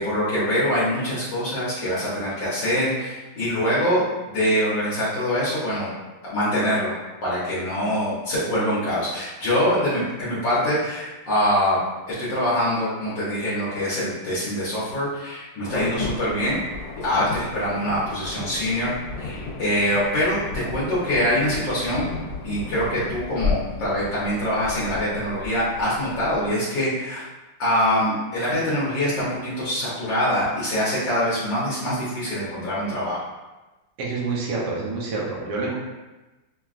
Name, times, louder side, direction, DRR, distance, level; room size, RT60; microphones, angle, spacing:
voice 1, 0.0-5.9 6.3-6.9 7.2-11.8 12.1-16.6 17.0-22.0 22.4-27.2 27.6-33.2, equal, 65° left, -9 dB, 1.6 m, -24 dB
Insect / Thunder / Rain, 15.6-26.5, left 4 dB, 90° left, 1.6 m, -34 dB
voice 2, 34.0-35.7, right 3 dB, 60° right, -4 dB, 1.3 m, -27 dB
5.9 x 2.2 x 2.5 m, 1.1 s
omnidirectional pair, 2.3 m